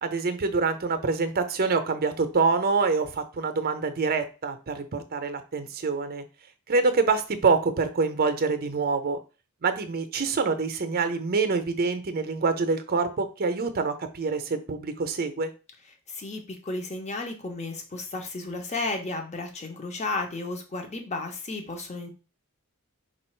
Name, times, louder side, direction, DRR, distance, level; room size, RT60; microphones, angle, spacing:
voice 1, 0.0-6.2 6.7-9.2 9.6-15.5, right 4 dB, 45° right, 9 dB, 0.6 m, -26 dB
voice 2, 16.1-22.1, left 2 dB, 30° left, 3 dB, 0.9 m, -33 dB
4.5 x 2.4 x 4.4 m, 0.33 s
head